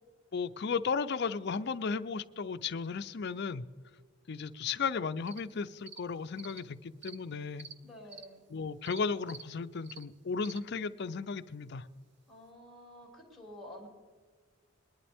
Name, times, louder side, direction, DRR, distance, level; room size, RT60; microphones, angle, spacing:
voice 1, 0.3-3.6 4.3-7.7 8.5-11.9, left 5 dB, 50° left, 12 dB, 0.4 m, -35 dB
sound 1, 5.3-5.4 5.9-6.0 6.4-6.6 7.0-7.2 7.6-7.7 8.1-8.3 8.9-9.0 9.3-9.4 9.8-10.0 10.4-10.6, right 6 dB, 55° right, 0.8 m, -48 dB
voice 2, 7.8-8.4 12.3-13.9, left 1 dB, ahead, -4 dB, 2.8 m, -50 dB
21.5 x 11.5 x 3.5 m, 1.6 s
head